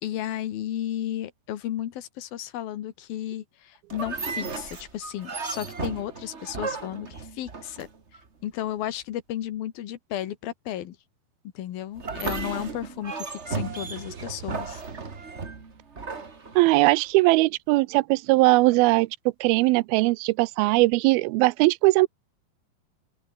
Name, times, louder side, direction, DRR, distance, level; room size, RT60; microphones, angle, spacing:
voice 1, 0.0-7.9 8.4-11.0 11.5-14.8, left 12 dB, 75° left, 3.4 m, -33 dB
sound 1, 3.9-8.2 12.0-17.1, right 4 dB, 30° right, 1.4 m, -35 dB
sound 2, 13.4-16.5, right 8 dB, 50° right, 1.4 m, -46 dB
voice 2, 16.6-19.1 19.4-22.1, right 21 dB, 85° right, 2.5 m, -20 dB
open air
omnidirectional pair, 4.3 m